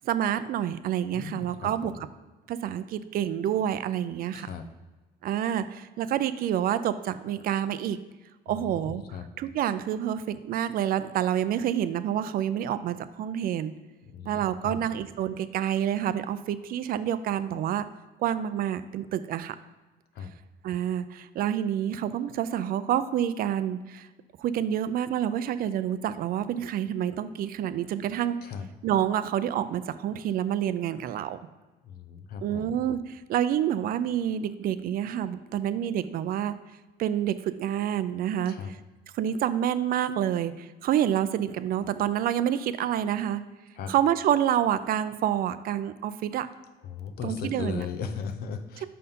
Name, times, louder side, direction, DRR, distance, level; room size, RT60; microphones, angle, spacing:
voice 1, 0.0-2.1 2.5-4.5 5.2-8.0 8.5-9.0 9.4-13.7 14.2-17.9 18.2-19.6 20.6-24.1 24.4-28.4 28.8-31.4 32.4-36.5 37.0-38.6 39.1-43.4 43.9-46.5 47.2-47.9, right 10 dB, 60° right, 13 dB, 0.4 m, -28 dB
voice 2, 1.1-2.0 4.3-4.7 8.5-9.3 14.1-14.8 20.1-20.3 28.4-28.7 31.8-32.8 38.5-38.7 43.7-43.9 46.8-48.9, left 6 dB, 65° left, 8 dB, 0.8 m, -37 dB
5.5 x 4.3 x 5.3 m, 1.2 s
cardioid pair, 110°, 17 cm